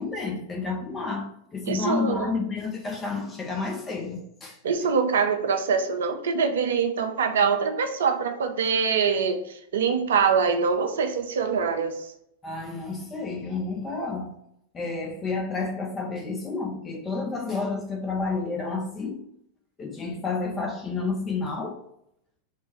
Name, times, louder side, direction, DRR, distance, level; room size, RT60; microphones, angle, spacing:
voice 1, 0.0-4.6 12.4-14.4 14.7-19.2 19.8-21.8, left 4 dB, 20° left, 0.6 m, -30 dB
voice 2, 1.7-2.3 4.6-12.1, right 5 dB, 60° right, 0.4 m, -24 dB
3.1 x 2.2 x 4.3 m
figure-of-eight pair, 90°, 0 cm